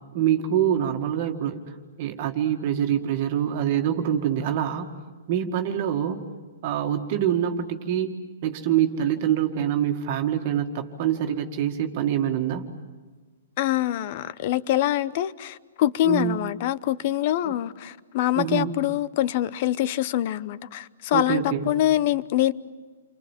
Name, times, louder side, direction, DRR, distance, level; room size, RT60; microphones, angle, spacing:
voice 1, 0.1-1.7 2.0-4.9 5.3-6.2 6.6-8.2 8.4-12.7 16.0-16.4 17.4-17.5 18.4-18.7 21.1-21.8, right 10 dB, 40° right, 2.0 m, -25 dB
voice 2, 13.6-22.5, left 13 dB, 40° left, 0.8 m, -24 dB
30.0 x 25.0 x 7.4 m
hypercardioid pair, 165°, 0 cm